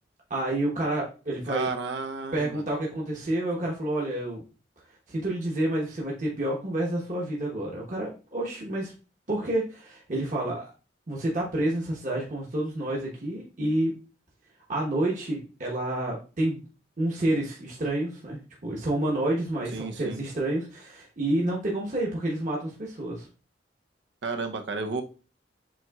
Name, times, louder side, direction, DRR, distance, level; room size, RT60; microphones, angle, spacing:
voice 1, 0.3-1.7 2.3-4.4 5.1-8.9 9.3-10.7 11.1-13.9 14.7-16.6 17.0-23.3, right 1 dB, 45° right, -3 dB, 1.0 m, -29 dB
voice 2, 1.5-2.6 19.7-20.2 24.2-25.0, right 4 dB, 90° right, 6 dB, 0.6 m, -32 dB
7.3 x 3.0 x 2.3 m, 0.34 s
head